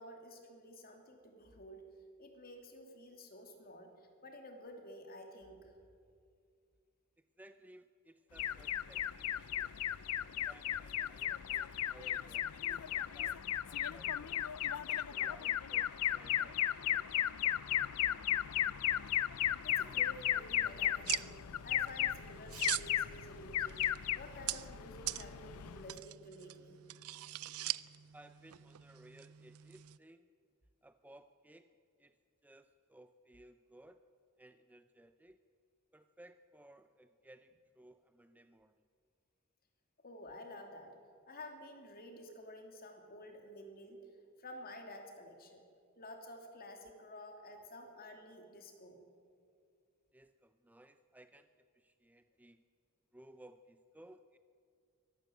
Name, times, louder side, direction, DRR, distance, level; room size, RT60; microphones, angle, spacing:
voice 1, 0.0-1.8 2.2-5.8 19.6-21.3 21.6-23.8 24.1-26.8 40.0-40.9 41.3-44.1 44.4-45.6 46.0-49.0, left 1 dB, 45° left, 4 dB, 2.8 m, -51 dB
voice 2, 7.4-9.8 10.2-14.4 14.9-17.1 18.0-18.1 28.1-30.3 30.8-31.7 32.0-32.2 32.4-34.0 34.4-35.4 35.9-38.8 47.5-47.7 50.1-52.6 53.1-54.4, right 1 dB, 5° right, 10 dB, 0.5 m, -60 dB
Alarm, 8.4-26.0, left 11 dB, 80° left, 0.5 m, -36 dB
sound 1, 21.1-30.0, right 16 dB, 75° right, 0.5 m, -43 dB
23.5 x 12.0 x 9.1 m, 2.3 s
head